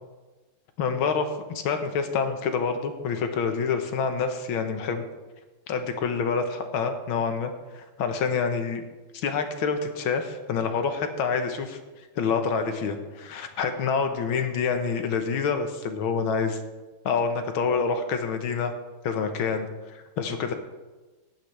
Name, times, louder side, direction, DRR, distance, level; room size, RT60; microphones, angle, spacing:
voice 1, 0.8-5.1 5.7-8.8 9.1-11.8 12.2-16.6 17.1-18.7 19.0-20.5, left 5 dB, 75° left, 7 dB, 1.8 m, -27 dB
15.0 x 10.5 x 3.3 m, 1.2 s
omnidirectional pair, 2.3 m